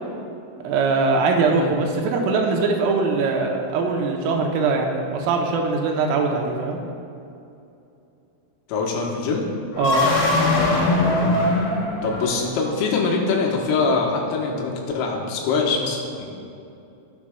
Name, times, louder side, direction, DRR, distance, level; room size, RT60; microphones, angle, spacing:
voice 1, 0.6-6.8 9.8-10.1, right 4 dB, 85° right, 1 dB, 3.3 m, -21 dB
voice 2, 8.7-9.5 12.0-16.3, left 4 dB, 85° left, -1 dB, 3.7 m, -23 dB
sound 1, 9.7-12.7, left 2 dB, 65° left, 3.5 m, -21 dB
18.5 x 7.3 x 2.3 m, 2.7 s
omnidirectional pair, 6.0 m